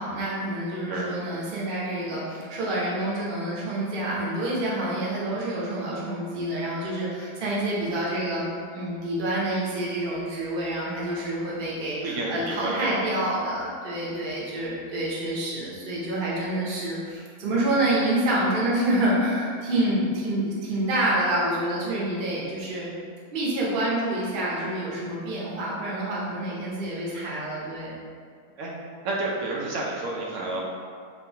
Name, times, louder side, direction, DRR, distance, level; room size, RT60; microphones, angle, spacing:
voice 1, 0.0-8.4 8.7-22.9 23.3-27.9, right 1 dB, 50° right, -6 dB, 0.8 m, -27 dB
voice 2, 12.0-13.0 28.6-28.7 29.0-30.6, right 2 dB, 85° right, -4 dB, 1.1 m, -30 dB
3.6 x 2.5 x 2.7 m, 2.1 s
omnidirectional pair, 1.5 m